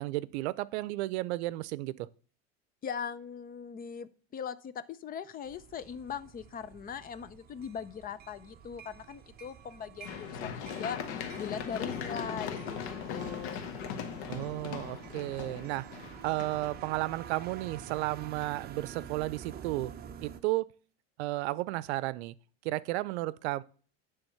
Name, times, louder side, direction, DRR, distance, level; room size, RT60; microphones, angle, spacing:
voice 1, 0.0-2.1 14.3-15.9 16.2-19.9 20.2-20.7 21.2-22.3 22.6-23.6, right 18 dB, 80° right, 0.6 m, -33 dB
voice 2, 2.8-13.7, left 7 dB, 25° left, 0.6 m, -40 dB
sound 1, 5.4-20.4, right 8 dB, 30° right, 0.8 m, -48 dB
Run, 10.0-17.9 18.4-18.5, left 7 dB, 80° left, 1.2 m, -39 dB
10.5 x 3.5 x 6.9 m
supercardioid pair, 130°, 32 cm